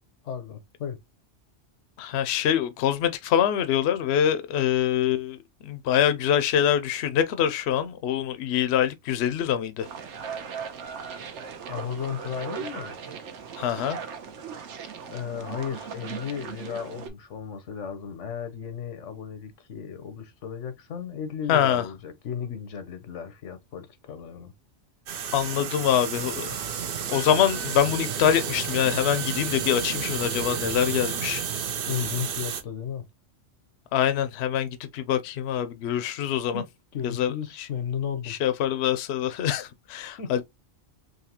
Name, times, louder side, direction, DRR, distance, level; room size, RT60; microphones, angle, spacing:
voice 1, 0.2-1.0 11.7-13.0 15.1-24.5 31.9-33.0 36.5-36.7 36.9-38.3 40.2-40.4, left 8 dB, 85° left, 1.2 m, -34 dB
voice 2, 2.0-5.4 5.6-9.9 13.6-14.0 21.5-21.9 25.3-26.6 27.1-31.4 33.9-36.6 37.0-37.7 38.2-40.4, left 9 dB, 70° left, 0.8 m, -25 dB
sound 1, 9.8-17.1, right 6 dB, 75° right, 1.1 m, -38 dB
sound 2, 25.1-32.6, right 7 dB, 55° right, 0.8 m, -31 dB
3.9 x 3.0 x 2.8 m
omnidirectional pair, 1.2 m